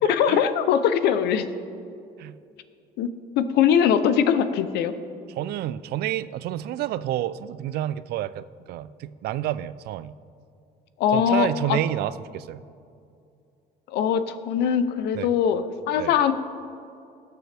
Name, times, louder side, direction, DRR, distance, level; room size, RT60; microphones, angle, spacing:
voice 1, 0.0-1.4 3.0-3.1 3.4-4.9 11.0-11.8 13.9-16.3, left 8 dB, 80° left, 12 dB, 0.7 m, -21 dB
voice 2, 5.4-10.1 11.1-12.6 15.1-15.3 16.0-16.1, right 13 dB, 70° right, 16 dB, 0.4 m, -29 dB
18.0 x 6.8 x 3.4 m, 2.4 s
cardioid pair, 110°, 17 cm